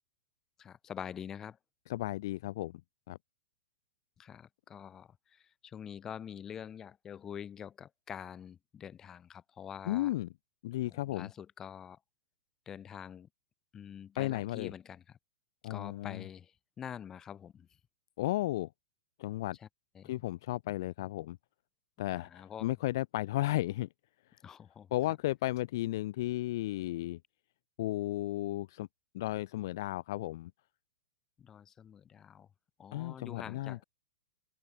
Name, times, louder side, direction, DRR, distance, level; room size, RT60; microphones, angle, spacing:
voice 1, 0.6-1.6 4.2-10.1 10.9-12.0 12.7-13.3 13.7-15.2 15.7-17.7 19.6-19.7 19.9-20.1 22.1-22.7 24.4-24.9 31.4-32.5 32.8-33.8, left 8 dB, 20° left, 0.8 m, -46 dB
voice 2, 1.9-2.7 3.1-3.2 9.9-10.3 10.6-11.3 14.2-14.7 15.6-16.2 18.2-18.7 19.2-19.6 20.0-21.4 22.0-23.9 24.9-27.2 27.8-28.9 29.1-30.5 32.9-33.8, left 16 dB, 50° left, 0.4 m, -34 dB
open air
figure-of-eight pair, 105°, 2 cm